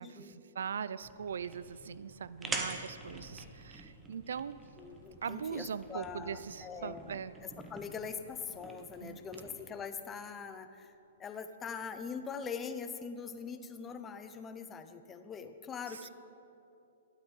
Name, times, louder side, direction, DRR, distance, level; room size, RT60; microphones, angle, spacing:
voice 1, 0.0-0.4 4.8-16.1, left 6 dB, 20° left, 9 dB, 0.6 m, -43 dB
voice 2, 0.6-4.6 5.2-7.3 9.0-9.2 15.9-16.1, right 7 dB, 75° right, 17 dB, 0.3 m, -40 dB
sound 1, 1.0-9.6, right 3 dB, 10° right, 1.0 m, -46 dB
Crackle, 3.0-13.8, left 1 dB, 80° left, 1.9 m, -64 dB
sound 2, 4.1-10.5, left 2 dB, 60° left, 3.0 m, -65 dB
11.0 x 8.2 x 5.4 m, 2.8 s
hypercardioid pair, 125°, 0 cm